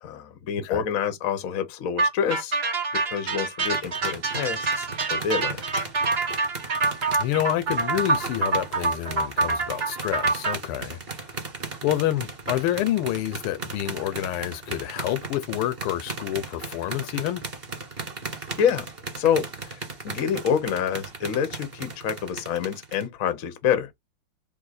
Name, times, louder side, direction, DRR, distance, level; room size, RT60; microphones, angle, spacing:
voice 1, 0.0-2.5 3.0-5.8 18.6-18.9 19.1-23.9, left 8 dB, 60° left, 0.9 m, -27 dB
sound 1, 2.0-10.5, right 3 dB, 50° right, 0.7 m, -26 dB
sound 2, 3.6-23.1, right 4 dB, 30° right, 1.5 m, -37 dB
voice 2, 7.1-11.0 11.8-17.4, left 13 dB, 80° left, 1.5 m, -28 dB
3.7 x 2.8 x 4.0 m
omnidirectional pair, 2.4 m